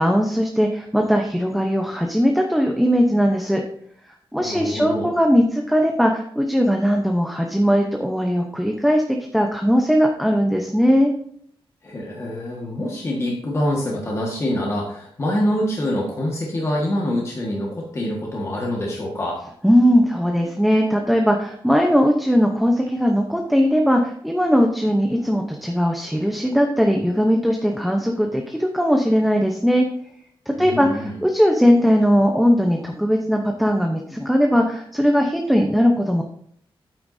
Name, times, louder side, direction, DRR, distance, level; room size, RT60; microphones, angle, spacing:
voice 1, 0.0-3.6 4.3-11.1 19.6-29.8 30.5-36.2, equal, ahead, 2 dB, 0.8 m, -19 dB
voice 2, 4.4-5.1 11.8-19.4 30.6-31.2, left 1 dB, 30° left, -3 dB, 1.6 m, -25 dB
9.3 x 9.0 x 2.7 m, 0.66 s
wide cardioid pair, 180°, 10 cm